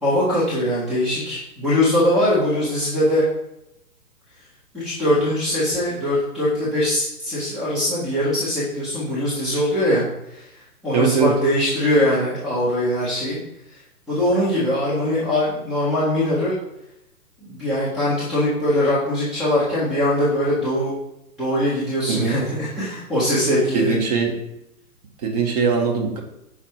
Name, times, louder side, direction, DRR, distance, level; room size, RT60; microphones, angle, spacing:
voice 1, 0.0-3.2 4.7-10.4 10.8-13.4 14.1-16.6 17.4-20.9 21.4-24.0, left 1 dB, ahead, -10 dB, 0.6 m, -21 dB
voice 2, 10.9-11.3 22.1-22.4 23.7-24.3 25.2-26.2, right 5 dB, 25° right, 2 dB, 0.9 m, -20 dB
5.7 x 4.6 x 4.5 m, 0.85 s
figure-of-eight pair, 125°, 46 cm